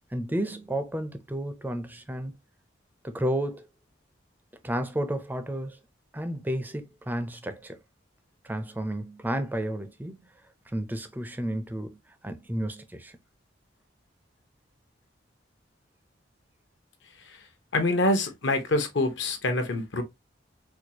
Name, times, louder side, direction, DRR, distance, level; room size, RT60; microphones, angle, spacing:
voice 1, 0.1-2.3 3.0-3.7 4.6-5.8 6.1-7.8 8.4-10.2 10.7-13.2, right 1 dB, 10° right, 0.4 m, -32 dB
voice 2, 17.7-20.0, left 2 dB, 70° left, 0.9 m, -25 dB
4.5 x 2.3 x 2.8 m
head